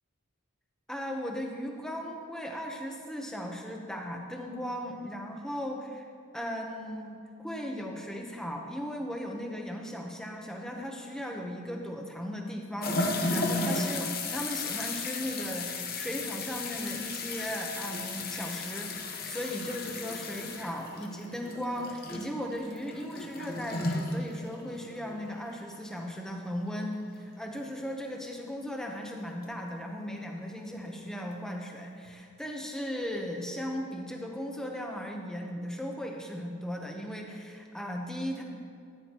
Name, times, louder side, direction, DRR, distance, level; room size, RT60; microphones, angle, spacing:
voice 1, 0.9-6.1 6.3-38.4, equal, 5° left, 1 dB, 0.9 m, -37 dB
sound 1, 12.8-25.2 25.5-25.6 27.6-27.7 29.4-29.5 31.1-31.2 32.1-32.2, left 3 dB, 45° left, 1.0 m, -34 dB
14.0 x 9.8 x 3.0 m, 2.5 s
head